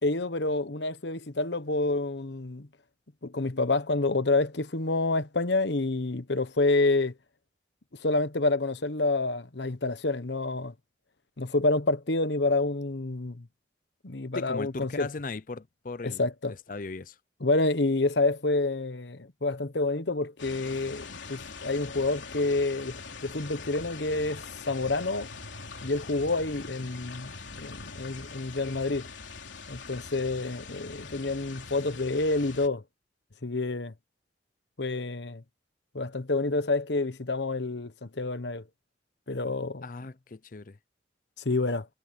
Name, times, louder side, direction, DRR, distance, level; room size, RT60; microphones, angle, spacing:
voice 1, 0.0-2.7 3.2-7.1 8.0-10.7 11.4-13.5 14.0-15.1 16.0-16.5 17.4-25.3 25.8-29.1 29.7-32.8 33.4-33.9 34.8-35.4 35.9-38.6 39.3-39.8 41.4-41.9, left 2 dB, 70° left, 1.2 m, -28 dB
voice 2, 14.3-17.2 39.8-40.8, left 3 dB, 45° left, 0.6 m, -38 dB
sound 1, 20.4-32.7, left 4 dB, 85° left, 3.4 m, -43 dB
head